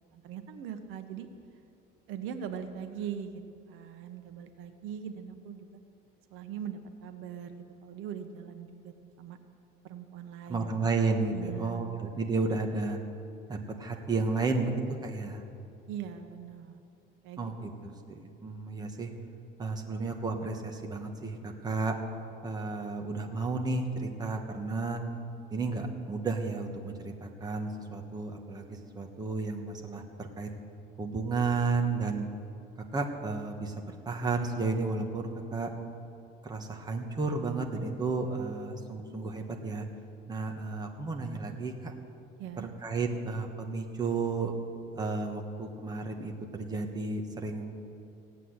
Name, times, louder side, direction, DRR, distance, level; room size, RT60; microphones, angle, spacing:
voice 1, 0.1-1.3 2.1-5.8 6.3-9.4 9.8-10.9 11.3-11.9 15.9-16.8 17.2-17.5 42.4-42.7, right 8 dB, 80° right, 7 dB, 1.2 m, -41 dB
voice 2, 10.5-13.0 13.5-14.7 15.0-15.4 17.4-19.1 19.6-21.9 22.4-25.0 25.5-30.5 31.0-32.3 32.9-35.7 36.4-39.8 40.3-41.9 42.6-44.5 44.9-47.7, right 3 dB, 20° right, 3 dB, 1.4 m, -32 dB
16.0 x 8.4 x 9.7 m, 2.6 s
cardioid pair, 145°, 20 cm